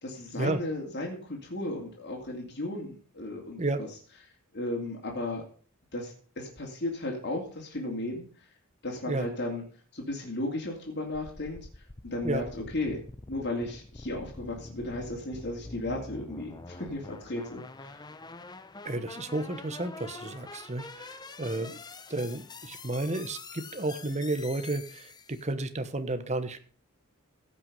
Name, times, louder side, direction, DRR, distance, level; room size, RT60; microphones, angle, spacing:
voice 1, 0.0-3.9 4.5-5.4 5.9-8.3 8.8-9.6 9.9-11.7 12.0-13.0 13.3-18.0, left 1 dB, 50° left, -1 dB, 2.7 m, -35 dB
sound 1, 11.1-25.5, left 3 dB, 20° left, 0.6 m, -45 dB
voice 2, 18.8-21.8 22.1-26.6, right 2 dB, 30° right, 10 dB, 1.1 m, -32 dB
15.5 x 6.0 x 5.4 m, 0.42 s
head